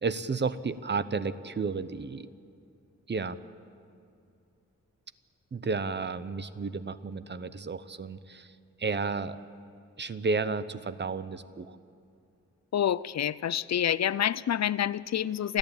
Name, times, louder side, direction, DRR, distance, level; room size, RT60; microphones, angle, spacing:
voice 1, 0.0-2.3 3.1-3.4 5.5-9.4 10.0-11.8, right 4 dB, 35° right, 13 dB, 0.7 m, -32 dB
voice 2, 12.7-15.6, left 10 dB, 65° left, 18 dB, 0.5 m, -27 dB
29.5 x 11.5 x 8.9 m, 2.5 s
wide cardioid pair, 115°, 30 cm